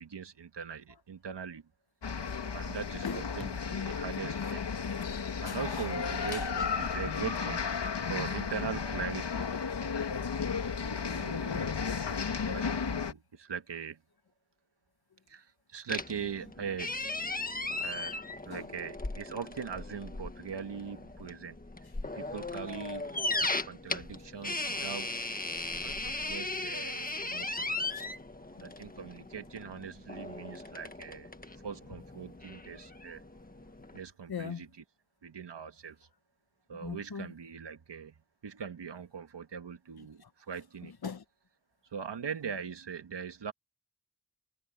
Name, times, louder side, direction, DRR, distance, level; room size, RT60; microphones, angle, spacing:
voice 1, 0.0-1.6 2.5-4.6 5.4-7.6 8.0-9.4 10.8-12.1 12.5-14.0 15.3-16.9 17.8-21.6 22.1-25.3 25.8-27.7 28.6-31.3 31.6-33.2 33.9-34.8 35.2-36.1 36.7-38.1 38.4-40.9 41.9-43.5, right 7 dB, 85° right, 1.6 m, -41 dB
sound 1, 2.0-13.1, left 6 dB, 75° left, 2.3 m, -34 dB
voice 2, 3.0-3.6 4.7-5.8 6.3-6.6 18.5-18.7 27.9-28.1 28.5-28.9 34.3-34.6 36.7-37.3 40.2-40.3 40.8-41.2, left 6 dB, 60° left, 1.3 m, -42 dB
sound 2, 15.9-34.0, left 2 dB, 20° left, 1.5 m, -37 dB
wide cardioid pair, 100°, 41 cm